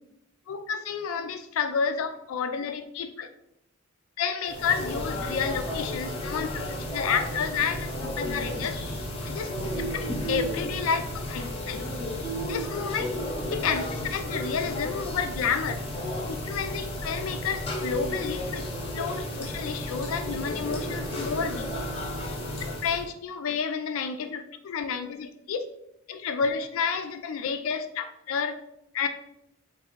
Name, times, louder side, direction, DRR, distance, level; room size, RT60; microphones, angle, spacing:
voice 1, 0.5-3.3 4.2-8.8 9.3-11.8 12.5-13.1 13.5-15.8 16.3-18.6 18.9-21.7 22.7-25.7 26.1-28.6 28.9-29.1, left 6 dB, 70° left, 8 dB, 0.3 m, -30 dB
sound 1, 4.5-23.1, equal, 25° left, 0.7 m, -33 dB
3.5 x 2.6 x 4.4 m, 0.80 s
head